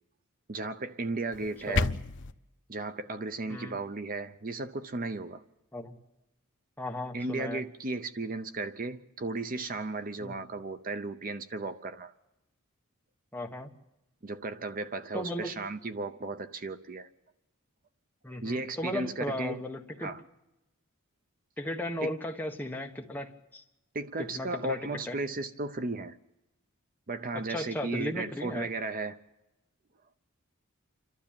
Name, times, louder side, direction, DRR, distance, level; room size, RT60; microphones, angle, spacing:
voice 1, 0.5-1.9 2.7-5.4 7.1-12.1 14.2-17.1 18.3-19.6 20.0-20.2 22.0-22.1 23.9-26.2 27.1-29.2, right 3 dB, 40° right, 0.7 m, -35 dB
sound 1, 1.3-2.3, left 3 dB, 60° left, 0.8 m, -30 dB
voice 2, 6.8-7.6 10.2-10.3 13.3-13.7 15.1-15.6 18.2-20.1 21.6-23.6 24.2-24.8 25.1-25.2 27.3-28.7, left 1 dB, 10° left, 1.4 m, -36 dB
28.0 x 12.5 x 8.8 m
head